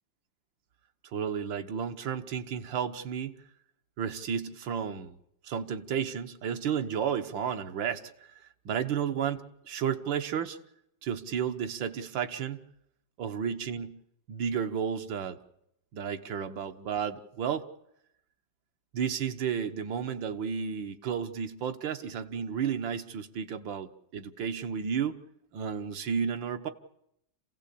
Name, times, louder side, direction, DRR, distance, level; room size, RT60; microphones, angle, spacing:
voice 1, 1.0-3.3 4.0-5.2 5.4-8.0 8.3-10.6 11.0-12.7 13.2-14.0 14.3-15.4 15.9-17.7 18.9-25.2 25.5-26.7, right 7 dB, 85° right, 7 dB, 1.9 m, -32 dB
27.0 x 16.0 x 8.4 m, 0.80 s
omnidirectional pair, 2.0 m